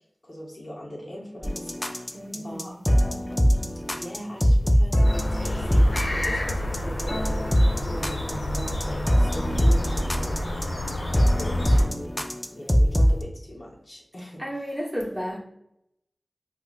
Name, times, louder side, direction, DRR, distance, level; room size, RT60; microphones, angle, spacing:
voice 1, 0.2-2.8 3.9-10.4 11.2-12.2 12.5-14.4, equal, 45° left, -4 dB, 0.8 m, -40 dB
sound 1, 1.4-13.2, equal, 15° left, 0.3 m, -22 dB
voice 2, 2.1-2.8 14.4-15.4, equal, 5° right, -4 dB, 1.0 m, -32 dB
sound 2, 5.0-11.8, left 1 dB, 70° left, 0.8 m, -29 dB
4.6 x 2.1 x 2.3 m, 0.74 s
wide cardioid pair, 60°, 0 cm